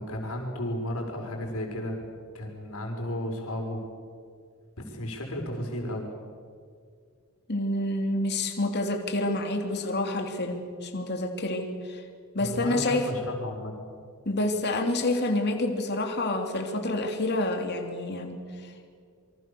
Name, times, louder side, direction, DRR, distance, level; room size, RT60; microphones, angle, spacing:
voice 1, 0.0-2.1 2.3-3.8 4.8-6.1 12.4-13.7, left 1 dB, 70° left, 2 dB, 5.6 m, -33 dB
voice 2, 7.5-12.0 12.3-13.1 14.2-18.9, left 2 dB, 50° left, 4 dB, 3.1 m, -28 dB
28.5 x 24.5 x 7.0 m, 2.1 s
head